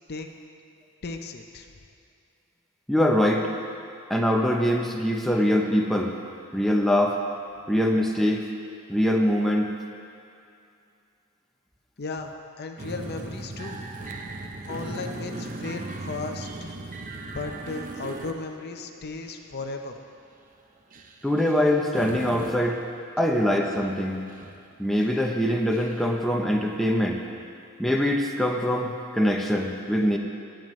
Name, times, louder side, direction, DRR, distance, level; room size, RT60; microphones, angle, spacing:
voice 1, 1.0-1.7 12.0-13.8 14.6-16.7 17.2-20.0, left 3 dB, 45° left, 4 dB, 0.6 m, -35 dB
voice 2, 2.9-3.5 4.1-6.1 6.5-7.2 7.7-8.5 8.9-9.7 21.2-22.8 23.2-24.2 24.8-27.2 27.8-30.2, equal, ahead, 0 dB, 0.7 m, -23 dB
sound 1, 12.8-18.8 19.2-19.4 19.8-20.0 20.9-22.7 23.2-23.3 23.6-24.0 24.3-24.7 25.0-26.1, right 2 dB, 35° right, 0.7 m, -38 dB
19.0 x 9.1 x 3.1 m, 2.5 s
head